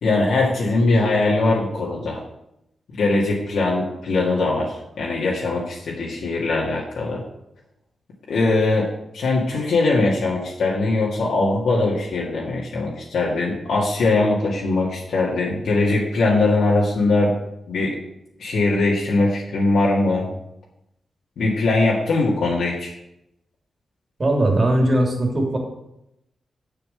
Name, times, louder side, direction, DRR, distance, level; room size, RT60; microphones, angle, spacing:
voice 1, 0.0-2.2 3.0-7.2 8.3-8.9 9.1-17.3 17.7-17.9 18.4-20.3 21.4-22.9, left 2 dB, 85° left, -4 dB, 1.8 m, -21 dB
voice 2, 24.2-25.6, right 1 dB, 40° right, 1 dB, 2.6 m, -19 dB
7.0 x 5.8 x 7.6 m, 0.83 s
cardioid pair, 80°, 0 cm